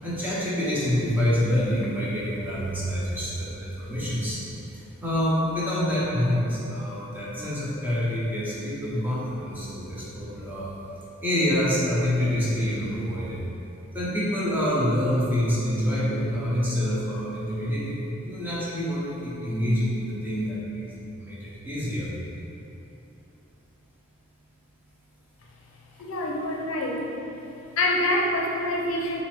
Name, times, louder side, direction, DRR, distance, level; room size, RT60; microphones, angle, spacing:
voice 1, 0.0-4.4 5.0-10.7 11.2-13.4 13.9-22.1, equal, 10° right, -8 dB, 0.7 m, -27 dB
voice 2, 26.0-27.0 27.8-29.2, left 1 dB, 70° left, -1 dB, 0.5 m, -26 dB
5.6 x 2.6 x 3.3 m, 2.9 s
head